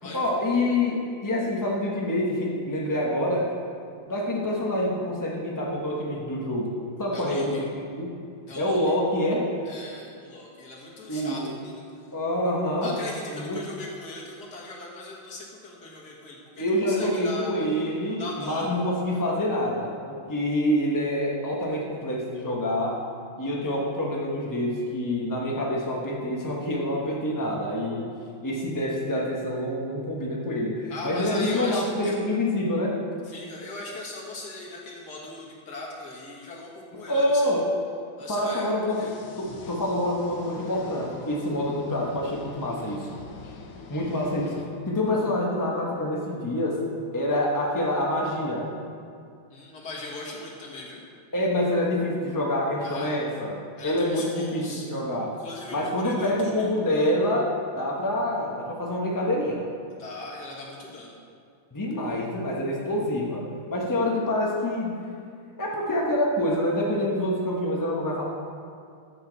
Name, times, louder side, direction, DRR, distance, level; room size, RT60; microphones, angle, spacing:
voice 1, 0.1-3.5 4.1-6.7 7.0-7.7 7.9-8.1 8.6-9.4 11.1-11.5 12.1-13.0 13.3-13.6 16.6-23.0 23.4-28.1 28.4-33.0 37.1-37.7 38.3-39.1 39.4-43.1 43.9-44.5 44.9-46.8 47.1-48.7 51.3-55.3 55.7-59.6 61.7-65.0 65.6-68.2, left 1 dB, 20° left, -3 dB, 0.4 m, -26 dB
voice 2, 7.1-7.6 8.5-8.8 9.7-12.0 12.8-17.5 18.2-18.9 19.1-19.2 30.9-32.2 33.3-37.5 38.2-39.1 49.5-51.0 52.8-53.1 53.8-54.9 55.4-56.7 60.0-61.2, left 2 dB, 50° left, -3 dB, 2.0 m, -39 dB
sound 1, 38.8-44.6, left 3 dB, 75° left, 1.7 m, -44 dB
13.5 x 6.9 x 4.0 m, 2.4 s
omnidirectional pair, 2.3 m